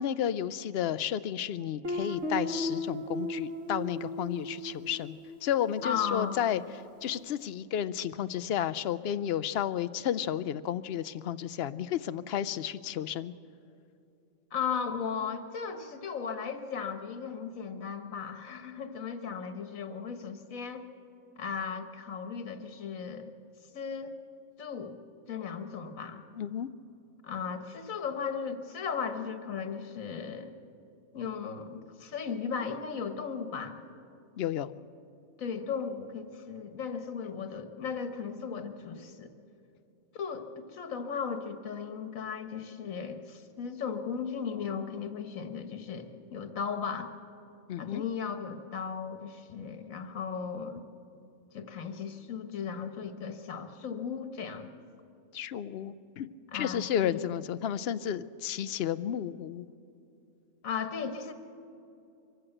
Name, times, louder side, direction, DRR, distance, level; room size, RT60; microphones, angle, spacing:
voice 1, 0.0-6.6 7.0-13.3 26.4-26.7 34.4-34.7 47.7-48.0 55.3-56.3 56.5-59.6, left 10 dB, 60° left, 14 dB, 0.7 m, -32 dB
Guitar, 1.8-6.5, left 1 dB, 65° right, 2.2 m, -36 dB
voice 2, 5.8-6.4 14.5-20.8 21.4-23.3 23.7-24.1 24.6-25.0 25.3-26.2 27.2-30.6 31.1-33.8 35.4-39.3 40.1-47.1 47.8-50.8 51.5-54.7 56.5-57.2 60.6-61.3, left 6 dB, 80° left, 7 dB, 1.7 m, -36 dB
23.5 x 15.0 x 7.8 m, 2.7 s
omnidirectional pair, 1.4 m